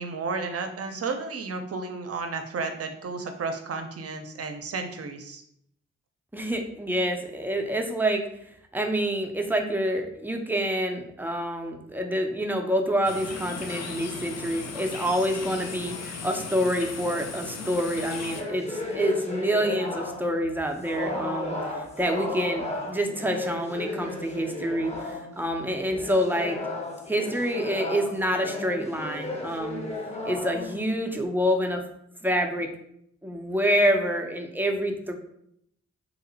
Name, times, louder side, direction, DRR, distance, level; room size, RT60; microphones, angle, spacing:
voice 1, 0.0-5.4, right 4 dB, 55° right, 6 dB, 0.6 m, -32 dB
voice 2, 6.3-8.2 8.7-26.6 27.1-29.9 30.2-31.8 32.2-32.7 33.2-35.1, equal, 5° right, 3 dB, 0.5 m, -27 dB
sound 1, 13.0-18.4, left 5 dB, 60° left, 0.5 m, -37 dB
sound 2, 18.4-20.4 20.8-25.4 25.8-31.2, left 2 dB, 20° left, 0.8 m, -34 dB
3.0 x 2.0 x 3.8 m, 0.72 s
cardioid pair, 50°, 29 cm